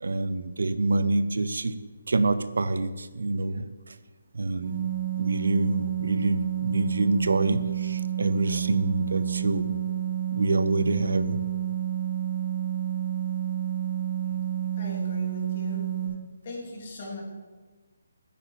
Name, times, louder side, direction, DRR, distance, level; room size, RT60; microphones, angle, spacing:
voice 1, 0.0-1.7 2.1-4.0 4.3-4.9 5.2-9.8 10.3-11.4, right 2 dB, 80° right, 0.7 m, -26 dB
sound 1, 4.6-16.1, right 11 dB, 55° right, 4.4 m, -29 dB
voice 2, 14.8-15.8 16.4-17.2, left 2 dB, 35° left, 3.2 m, -38 dB
9.5 x 8.3 x 7.3 m
hypercardioid pair, 170°, 0 cm